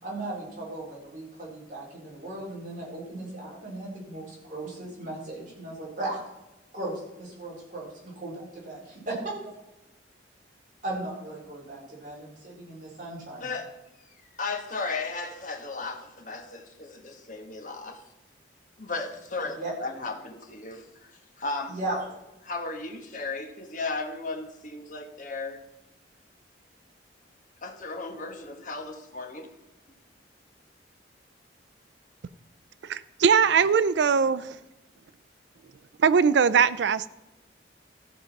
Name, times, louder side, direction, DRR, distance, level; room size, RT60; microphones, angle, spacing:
voice 1, 0.0-6.2 6.7-9.5 10.8-13.5 19.4-19.7 21.7-22.0, right 2 dB, 45° right, -5 dB, 4.4 m, -37 dB
voice 2, 13.4-13.7 14.4-18.0 18.8-19.6 19.8-21.1 21.4-22.0 22.4-25.6 27.6-29.5, left 3 dB, 40° left, 4 dB, 1.3 m, -35 dB
voice 3, 32.8-34.6 36.0-37.1, right 6 dB, 65° right, 16 dB, 0.4 m, -21 dB
14.5 x 5.3 x 5.8 m, 0.98 s
head